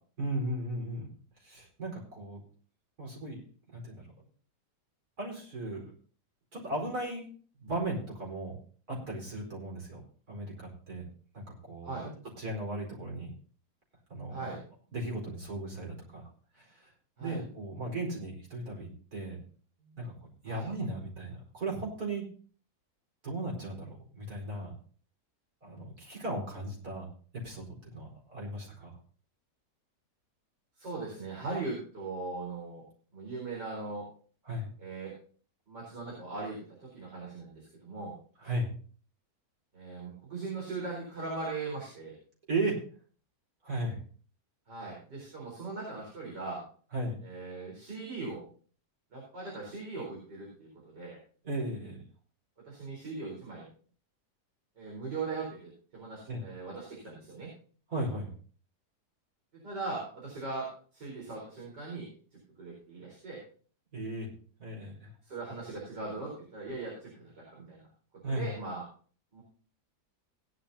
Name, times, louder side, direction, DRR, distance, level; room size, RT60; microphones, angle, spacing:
voice 1, 0.2-1.1 1.4-2.4 3.0-3.4 3.7-4.2 5.2-5.9 6.5-7.2 7.6-8.5 8.9-10.0 10.3-11.0 11.3-12.0 12.4-13.3 14.1-14.6 14.9-16.3 16.5-16.9 17.2-19.4 19.8-20.1 20.4-22.2 23.2-24.7 25.6-28.9 34.4-34.7 38.4-38.7 42.5-42.8 43.6-44.0 46.9-47.2 51.4-52.0 56.3-56.4 57.9-58.3 63.9-64.3 64.6-65.1 68.2-68.5, right 1 dB, 60° right, -2 dB, 5.0 m, -36 dB
voice 2, 30.8-32.8 33.1-34.0 34.8-35.1 35.7-38.1 39.7-42.1 44.7-46.6 47.2-48.4 49.1-51.2 52.6-53.7 54.8-57.5 59.6-62.1 62.6-63.4 65.2-67.8 68.2-68.8 69.3-69.4, right 3 dB, 90° right, -4 dB, 5.0 m, -39 dB
17.5 x 10.5 x 2.8 m, 0.43 s
omnidirectional pair, 1.8 m